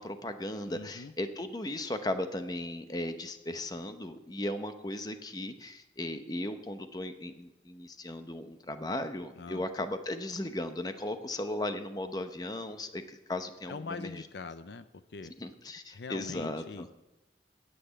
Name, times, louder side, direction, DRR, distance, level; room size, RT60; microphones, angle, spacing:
voice 1, 0.0-14.2 15.4-16.9, left 1 dB, 20° left, 8 dB, 0.8 m, -36 dB
voice 2, 0.7-1.1 9.4-9.6 13.7-15.3 15.9-16.9, left 4 dB, 70° left, 12 dB, 0.5 m, -42 dB
9.8 x 7.9 x 9.0 m, 1.0 s
head